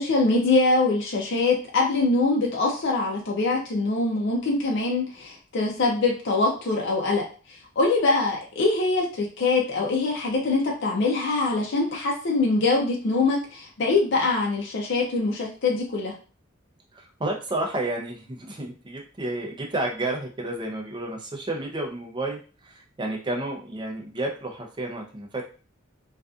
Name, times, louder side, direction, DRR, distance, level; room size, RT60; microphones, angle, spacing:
voice 1, 0.0-16.1, left 3 dB, 60° left, -2 dB, 0.5 m, -23 dB
voice 2, 16.9-25.4, right 2 dB, 25° right, 1 dB, 0.5 m, -31 dB
2.5 x 2.3 x 2.3 m, 0.37 s
head